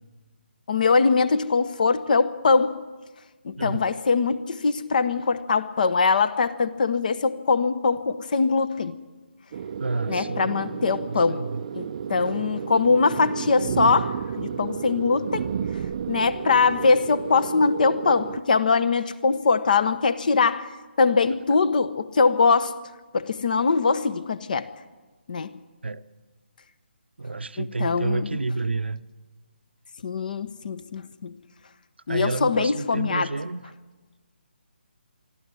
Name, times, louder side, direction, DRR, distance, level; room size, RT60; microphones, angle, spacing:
voice 1, 0.7-2.8 3.4-9.0 10.1-11.4 11.7-15.4 16.1-20.7 21.0-22.8 23.1-24.7 25.3-25.5 27.6-28.4 30.0-31.3 32.1-33.3, left 4 dB, 45° left, 1.1 m, -22 dB
sound 1, 9.5-18.4, right 7 dB, 35° right, 0.6 m, -32 dB
voice 2, 9.8-10.5 10.8-11.7 25.8-26.0 27.2-29.0 32.1-33.7, right 3 dB, 70° right, 0.8 m, -29 dB
24.0 x 13.5 x 9.8 m
figure-of-eight pair, 145°, 6 cm